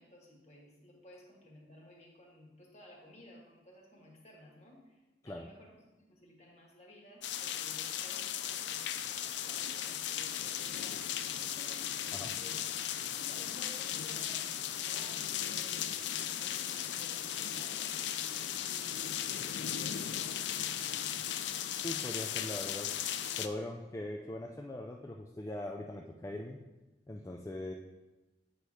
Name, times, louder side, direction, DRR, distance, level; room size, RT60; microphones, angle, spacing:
voice 1, 0.0-21.2, left 1 dB, 40° left, -1 dB, 1.6 m, -57 dB
sound 1, 7.2-23.5, left 10 dB, 85° left, 0.4 m, -36 dB
voice 2, 21.8-22.9 23.4-26.7 27.1-27.7, left 1 dB, 15° left, 1 dB, 0.4 m, -41 dB
8.0 x 4.2 x 4.9 m, 1.1 s
head